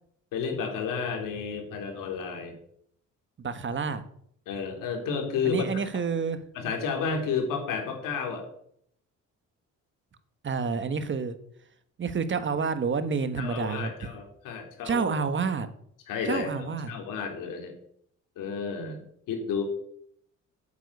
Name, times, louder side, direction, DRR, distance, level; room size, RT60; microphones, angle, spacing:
voice 1, 0.3-2.5 4.5-5.6 6.6-8.4 13.4-15.1 16.1-16.5 16.9-17.7 18.4-19.6, left 5 dB, 85° left, 3 dB, 3.6 m, -31 dB
voice 2, 3.4-4.0 5.4-6.4 10.4-11.4 12.0-14.1 14.8-15.7 16.2-16.9, right 5 dB, 35° right, 11 dB, 1.3 m, -29 dB
9.0 x 8.6 x 8.1 m, 0.68 s
cardioid pair, 105°, 32 cm